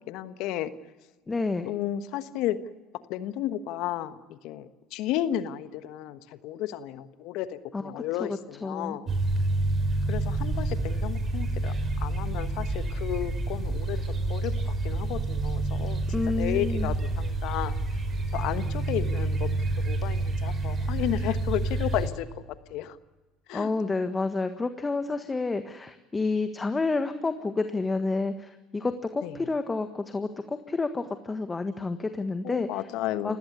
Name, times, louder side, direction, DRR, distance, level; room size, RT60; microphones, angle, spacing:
voice 1, 0.1-0.7 1.7-2.6 3.1-9.1 10.1-14.0 14.3-16.0 16.4-17.8 18.3-19.5 19.8-22.4 22.7-23.0 23.5-23.7 29.2-29.3 32.4-33.4, left 12 dB, 65° left, 12 dB, 1.3 m, -33 dB
voice 2, 1.3-1.7 7.7-7.8 8.2-9.0 16.1-16.9 23.5-32.8 33.2-33.4, left 3 dB, 20° left, 8 dB, 1.5 m, -29 dB
sound 1, 9.1-22.1, right 2 dB, 35° right, 5.2 m, -28 dB
30.0 x 17.0 x 6.8 m, 1.2 s
hypercardioid pair, 70°, 0 cm